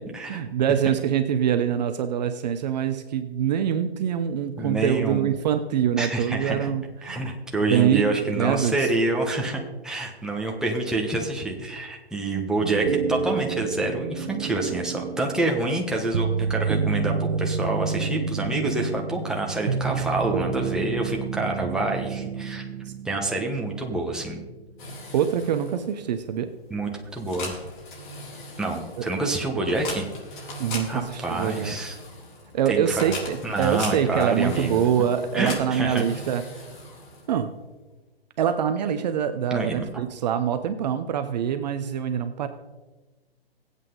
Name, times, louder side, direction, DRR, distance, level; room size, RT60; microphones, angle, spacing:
voice 1, 0.3-7.3 7.6-8.7 22.9-23.0 25.1-26.5 29.0-29.1 30.6-31.7 32.5-36.4 37.3-37.5 38.4-42.5, right 9 dB, 45° right, 9 dB, 0.8 m, -24 dB
voice 2, 4.6-5.3 6.0-6.7 7.0-22.6 23.0-24.4 26.7-27.5 28.6-30.1 30.9-31.9 32.7-33.1 33.4-34.9 35.3-36.0 39.5-39.9, right 2 dB, ahead, 0 dB, 1.3 m, -27 dB
sound 1, 12.6-24.6 24.9-25.0, right 5 dB, 75° right, 1.0 m, -29 dB
sound 2, 24.8-37.5, left 2 dB, 50° left, 4.2 m, -39 dB
22.0 x 8.2 x 3.9 m, 1.2 s
hypercardioid pair, 145°, 31 cm